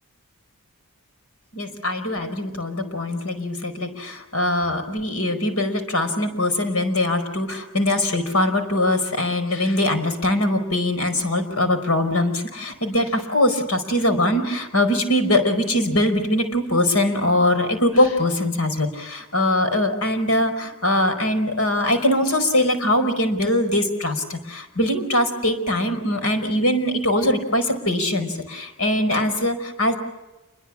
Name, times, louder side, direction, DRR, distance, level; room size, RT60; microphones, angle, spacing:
voice 1, 1.5-29.9, left 1 dB, 80° left, 8 dB, 5.0 m, -22 dB
29.0 x 22.5 x 7.4 m, 1.0 s
head